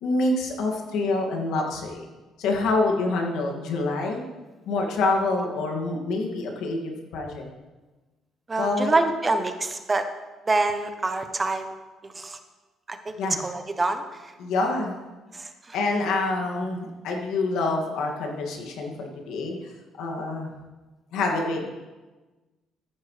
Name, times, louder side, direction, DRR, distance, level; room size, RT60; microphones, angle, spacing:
voice 1, 0.0-2.1 2.4-4.2 4.7-7.4 8.6-8.9 13.2-13.4 14.4-15.0 15.7-19.6 20.0-20.5 21.1-21.7, left 2 dB, 80° left, 0 dB, 2.0 m, -26 dB
voice 2, 8.5-10.1 10.5-11.7 12.0-12.4 12.9-14.3 15.3-15.8, right 3 dB, 20° right, 8 dB, 0.7 m, -26 dB
14.0 x 9.3 x 3.3 m, 1.2 s
cardioid pair, 145°, 0 cm